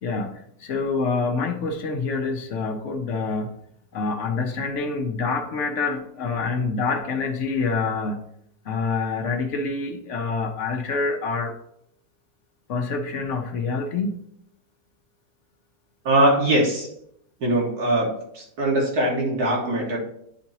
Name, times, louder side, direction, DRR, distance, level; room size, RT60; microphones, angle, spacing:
voice 1, 0.0-3.5 3.9-8.2 8.6-11.5 12.7-14.2, left 4 dB, 60° left, 5 dB, 1.1 m, -26 dB
voice 2, 16.1-16.9 17.4-18.1 18.3-20.0, right 1 dB, 80° right, -2 dB, 2.2 m, -21 dB
9.8 x 4.3 x 2.8 m, 0.73 s
omnidirectional pair, 1.6 m